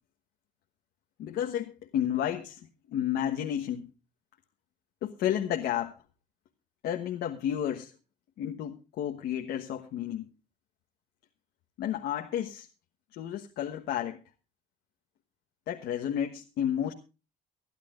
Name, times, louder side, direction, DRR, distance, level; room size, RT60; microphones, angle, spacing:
voice 1, 1.2-3.9 5.0-6.0 6.8-7.9 8.4-10.3 11.8-12.7 13.1-14.2 15.7-16.9, left 10 dB, 75° left, 1.3 m, -31 dB
24.5 x 11.0 x 2.5 m
cardioid pair, 110°, 17 cm